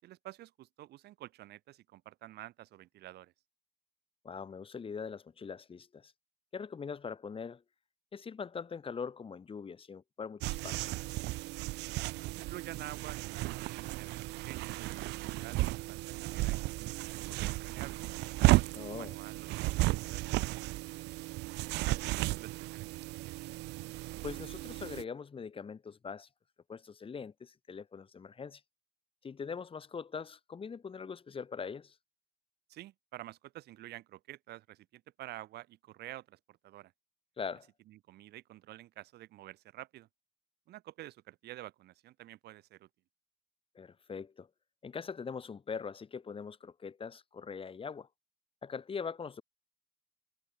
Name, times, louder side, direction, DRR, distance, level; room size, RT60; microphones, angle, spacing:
voice 1, 0.0-3.3 12.3-18.0 18.3-21.0 21.7-23.4 32.7-36.9 37.9-40.1 40.7-42.9, right 15 dB, 75° right, 4.3 m, -50 dB
voice 2, 4.2-6.1 6.5-7.6 8.1-10.9 18.8-19.1 24.2-26.3 26.7-28.6 29.2-32.0 37.4-37.7 43.7-44.5 44.8-48.1 48.6-49.4, left 6 dB, 30° left, 4.7 m, -42 dB
sound 1, 10.4-25.0, right 21 dB, 90° right, 1.9 m, -34 dB
cardioid pair, 110°, 17 cm